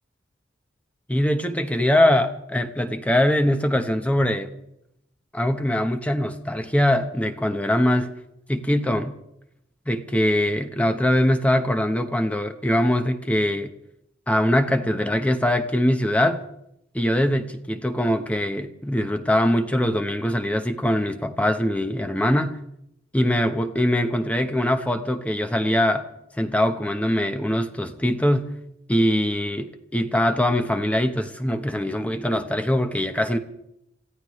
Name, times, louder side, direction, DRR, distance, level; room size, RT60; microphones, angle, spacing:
voice 1, 1.1-4.5 5.3-8.1 8.5-9.1 9.9-13.7 14.3-16.4 16.9-22.6 23.1-26.0 26.4-28.6 28.9-33.4, left 1 dB, 10° left, 7 dB, 0.9 m, -22 dB
28.5 x 15.0 x 3.2 m, 0.80 s
head